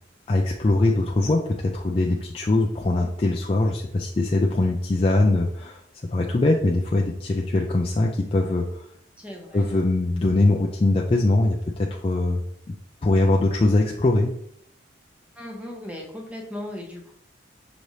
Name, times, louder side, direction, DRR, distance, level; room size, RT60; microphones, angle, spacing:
voice 1, 0.3-5.8 6.1-8.8 9.5-12.7 13.0-14.3, left 2 dB, 30° left, 0 dB, 0.3 m, -22 dB
voice 2, 9.2-9.7 15.3-17.1, left 1 dB, 5° right, 0 dB, 0.8 m, -37 dB
6.0 x 3.2 x 2.7 m, 0.69 s
head